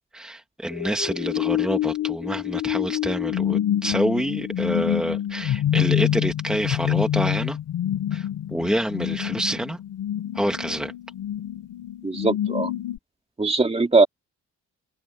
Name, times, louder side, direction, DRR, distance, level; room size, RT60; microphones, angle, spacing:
voice 1, 0.1-7.6 8.1-9.8 10.3-10.9, right 1 dB, ahead, 1.8 m, -27 dB
sound 1, 0.7-13.0, left 11 dB, 75° left, 4.4 m, -27 dB
voice 2, 12.0-12.7 13.4-14.1, right 3 dB, 20° right, 2.6 m, -20 dB
cardioid pair, 90°, 30 cm